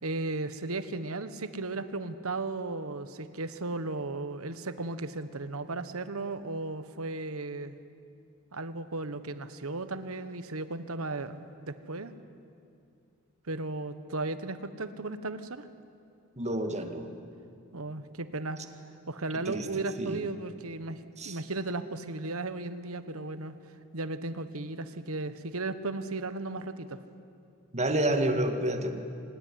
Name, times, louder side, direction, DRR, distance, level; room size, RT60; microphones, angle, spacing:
voice 1, 0.0-7.8 8.5-12.1 13.5-15.7 17.7-18.6 19.1-23.5 23.9-27.0, right 2 dB, 70° right, 12 dB, 1.3 m, -35 dB
voice 2, 16.4-17.1 19.5-19.7 20.0-20.2 21.2-21.4 27.7-29.0, right 1 dB, 30° right, 6 dB, 2.0 m, -29 dB
25.0 x 19.0 x 9.9 m, 2.5 s
head